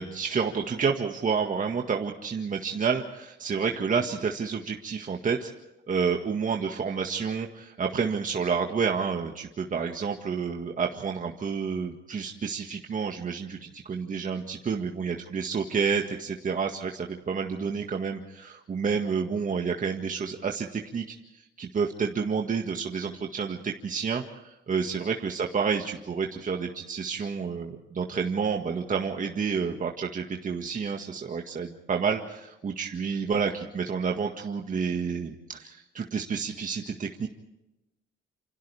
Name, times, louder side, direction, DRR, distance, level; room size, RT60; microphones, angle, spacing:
voice 1, 0.0-5.5 5.9-21.0 21.3-37.3, right 6 dB, 40° right, 2 dB, 1.8 m, -29 dB
28.0 x 27.0 x 3.5 m, 0.94 s
cardioid pair, 90°, 20 cm